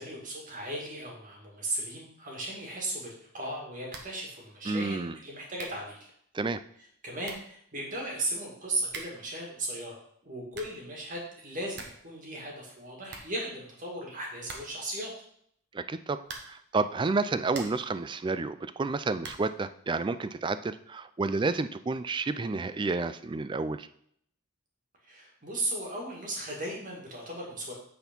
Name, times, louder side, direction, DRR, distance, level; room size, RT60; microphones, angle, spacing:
voice 1, 0.0-6.0 7.0-15.1 25.1-27.7, right 1 dB, 40° right, -1 dB, 2.2 m, -36 dB
sound 1, 3.9-4.3 4.5-4.6 5.2-5.3 5.5-5.9 6.8-6.9 7.2-7.6 8.8-9.3 10.3-10.9 11.2-11.3 11.5-12.1 12.4-12.5 12.7-12.8 13.1-13.9 14.4-14.9 16.2-16.7 17.2-17.9 19.2-19.6, right 4 dB, 55° right, 1.1 m, -45 dB
voice 2, 4.7-5.2 6.3-6.6 15.7-23.9, right 3 dB, 20° right, 13 dB, 0.3 m, -30 dB
8.1 x 4.3 x 5.3 m, 0.67 s
head